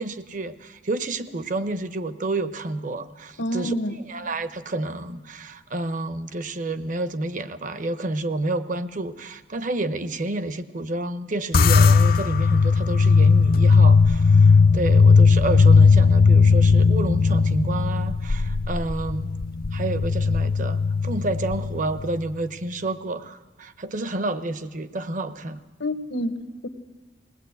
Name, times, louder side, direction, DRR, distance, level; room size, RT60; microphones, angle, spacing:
voice 1, 0.0-3.7 4.1-19.3 19.7-25.6, right 2 dB, 45° right, 0.8 m, -29 dB
voice 2, 3.4-4.0 25.8-26.7, equal, 80° left, 1.1 m, -28 dB
sound 1, 11.5-22.1, left 4 dB, 50° left, 0.5 m, -17 dB
20.5 x 18.5 x 8.0 m
head